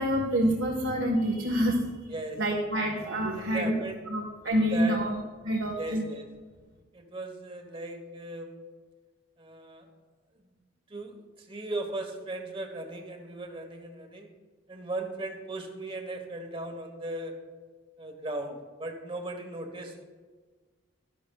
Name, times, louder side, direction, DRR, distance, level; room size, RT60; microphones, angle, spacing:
voice 1, 0.0-2.1 2.4-3.7 4.1-5.2 5.4-6.1, equal, 90° right, -2 dB, 1.4 m, -27 dB
voice 2, 2.1-2.4 3.3-4.0 4.7-5.0 5.7-6.3 6.9-8.6 9.4-9.9 10.9-14.3 14.7-17.4 18.0-20.0, right 2 dB, 25° right, 5 dB, 1.1 m, -37 dB
13.0 x 12.0 x 2.3 m, 1.4 s
head